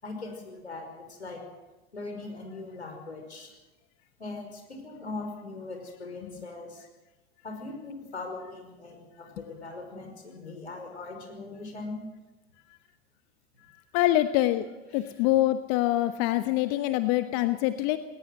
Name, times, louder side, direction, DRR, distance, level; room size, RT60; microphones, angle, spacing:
voice 1, 0.0-1.4 1.9-3.5 4.2-6.8 7.4-12.0 14.9-15.0, left 3 dB, 85° left, 3 dB, 5.4 m, -40 dB
voice 2, 13.9-14.6 14.9-18.0, left 15 dB, 45° left, 11 dB, 1.0 m, -25 dB
19.5 x 18.5 x 7.6 m, 1.1 s
figure-of-eight pair, 85°, 32 cm